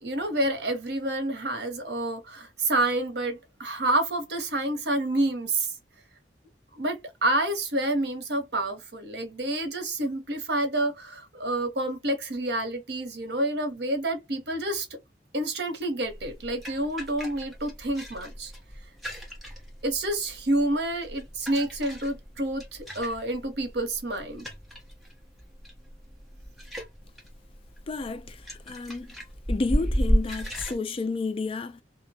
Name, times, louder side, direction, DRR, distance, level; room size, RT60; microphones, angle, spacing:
voice 1, 0.0-5.7 6.8-14.9 15.3-18.5 19.8-22.7 22.9-24.5, right 1 dB, 65° right, 0.9 m, -28 dB
sound 1, 16.1-30.8, equal, ahead, 0.8 m, -33 dB
voice 2, 27.9-29.1 29.5-31.8, left 3 dB, 30° left, 0.3 m, -31 dB
2.6 x 2.1 x 2.7 m
head